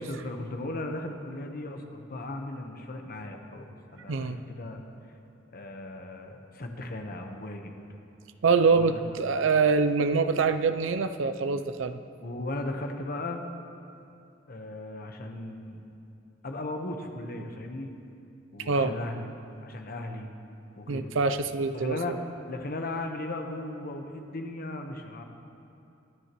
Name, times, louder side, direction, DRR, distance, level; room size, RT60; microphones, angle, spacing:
voice 1, 0.0-4.8 5.5-7.8 8.6-9.0 12.2-13.4 14.5-15.8 16.4-17.9 18.5-19.3 19.6-20.3 20.8-21.1 21.7-22.2 22.5-25.2, left 2 dB, 50° left, 4 dB, 1.1 m, -37 dB
voice 2, 4.1-4.4 8.4-12.0 18.7-19.0 20.9-22.2, right 4 dB, 80° right, 10 dB, 0.5 m, -25 dB
24.5 x 9.8 x 3.1 m, 2.6 s
head